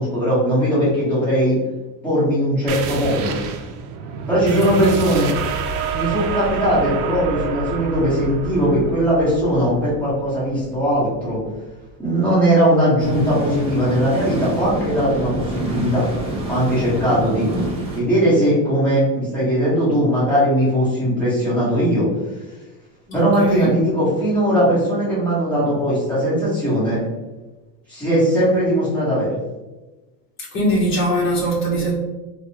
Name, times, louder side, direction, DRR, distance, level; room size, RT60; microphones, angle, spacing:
voice 1, 0.0-1.6 2.0-3.4 4.3-5.3 5.9-11.4 12.0-16.1 16.5-17.5 17.9-22.1 23.1-27.0 27.9-29.4, equal, 5° left, -11 dB, 1.3 m, -19 dB
sound 1, 2.7-11.9, right 6 dB, 65° right, 0.5 m, -29 dB
sound 2, 13.0-18.0, right 1 dB, 15° right, 0.4 m, -28 dB
voice 2, 23.1-23.7 30.5-31.9, right 1 dB, 30° left, -5 dB, 1.1 m, -22 dB
3.5 x 2.3 x 2.9 m, 1.1 s
cardioid pair, 170°, 43 cm